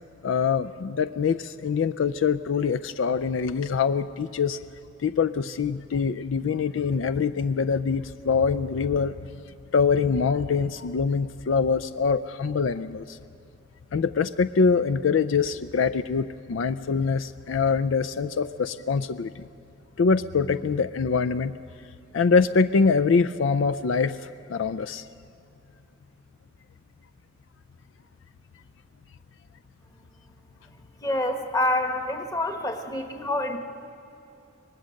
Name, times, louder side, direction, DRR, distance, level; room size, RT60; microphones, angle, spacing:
voice 1, 0.2-4.6 5.0-9.1 9.7-13.2 13.9-19.5 20.0-21.5 22.1-25.0, left 5 dB, 70° left, 12 dB, 0.4 m, -24 dB
voice 2, 31.0-33.6, left 1 dB, 20° left, 5 dB, 1.3 m, -27 dB
24.5 x 19.0 x 6.4 m, 2.8 s
head